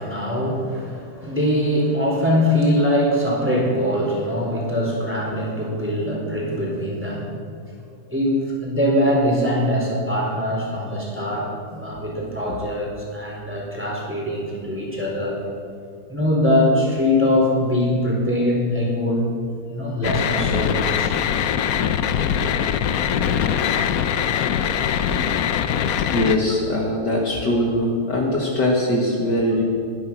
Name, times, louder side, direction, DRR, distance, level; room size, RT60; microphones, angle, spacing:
voice 1, 0.0-7.3 8.1-15.4 16.1-19.4 19.7-21.2, left 1 dB, 5° right, -3 dB, 4.1 m, -22 dB
sound 1, 20.0-26.4, left 8 dB, 75° left, 0.8 m, -22 dB
voice 2, 26.1-29.6, left 1 dB, 50° left, -2 dB, 2.3 m, -21 dB
22.0 x 10.5 x 6.1 m, 2.4 s
omnidirectional pair, 2.4 m